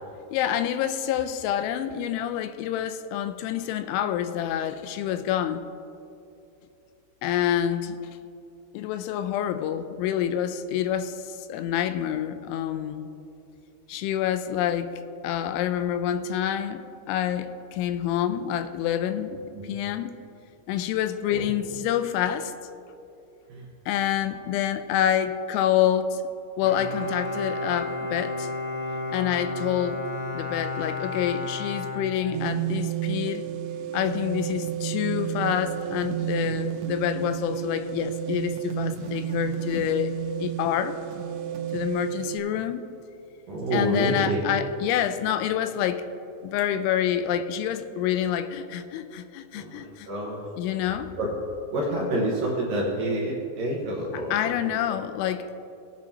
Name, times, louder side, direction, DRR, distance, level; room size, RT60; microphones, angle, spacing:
voice 1, 0.3-5.6 7.2-8.0 8.7-13.1 13.9-14.9 15.2-20.1 20.7-22.5 23.9-26.2 26.6-28.5 29.1-30.1 30.3-33.4 33.9-40.1 40.4-41.0 41.7-42.8 43.7-46.1 46.4-50.1 50.6-51.1 54.1-55.5, left 10 dB, 85° left, 10 dB, 2.9 m, -27 dB
Bowed string instrument, 26.6-32.8, left 2 dB, 35° left, 2.3 m, -32 dB
sound 1, 32.3-42.4, right 11 dB, 85° right, 3.2 m, -31 dB
voice 2, 43.5-44.4 49.5-50.4 51.2-51.3 51.7-54.3 54.6-54.7, right 1 dB, 65° right, -4 dB, 2.3 m, -28 dB
20.5 x 9.0 x 2.8 m, 2.6 s
omnidirectional pair, 5.4 m